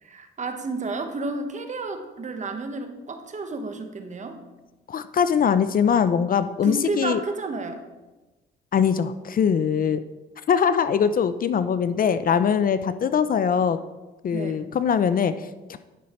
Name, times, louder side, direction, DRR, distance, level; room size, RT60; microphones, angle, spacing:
voice 1, 0.0-4.4 6.6-7.8 14.3-14.7, right 3 dB, 35° right, 6 dB, 1.2 m, -31 dB
voice 2, 4.9-7.2 8.7-10.0 10.5-13.8 14.2-15.8, left 7 dB, 45° left, 12 dB, 0.5 m, -22 dB
11.0 x 5.6 x 4.4 m, 1.1 s
cardioid pair, 90°, 20 cm